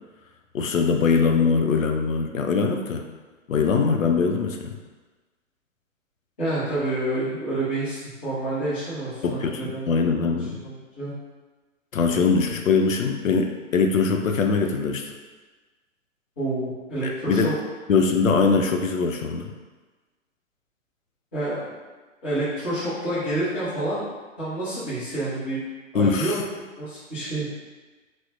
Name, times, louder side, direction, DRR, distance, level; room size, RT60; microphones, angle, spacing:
voice 1, 0.5-3.1 3.5-4.7 9.2-10.5 11.9-15.0 17.0-17.5 17.9-19.5 25.9-26.4, left 5 dB, 80° left, 3 dB, 0.5 m, -22 dB
voice 2, 6.4-9.9 10.2-10.4 10.6-11.1 16.4-17.5 21.3-21.7 22.2-24.1 24.4-25.6 25.9-27.5, right 1 dB, 10° left, -13 dB, 0.3 m, -28 dB
4.3 x 2.0 x 2.4 m, 1.3 s
figure-of-eight pair, 125°, 39 cm